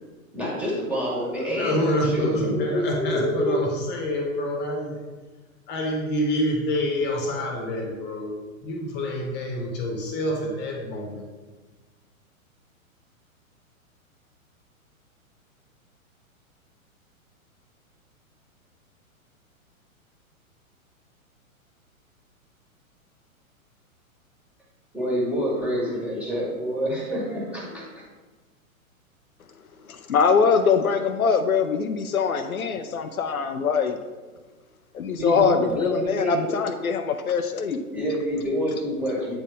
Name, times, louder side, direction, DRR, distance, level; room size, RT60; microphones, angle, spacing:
voice 1, 0.3-3.6 24.9-28.1 35.2-36.6 37.9-39.4, equal, 5° right, -5 dB, 2.0 m, -27 dB
voice 2, 1.2-5.0 5.7-11.2, equal, 25° left, 0 dB, 1.5 m, -27 dB
voice 3, 29.8-34.0 34.9-37.8, left 5 dB, 80° left, 7 dB, 0.6 m, -23 dB
8.8 x 4.3 x 3.6 m, 1.3 s
figure-of-eight pair, 110°, 42 cm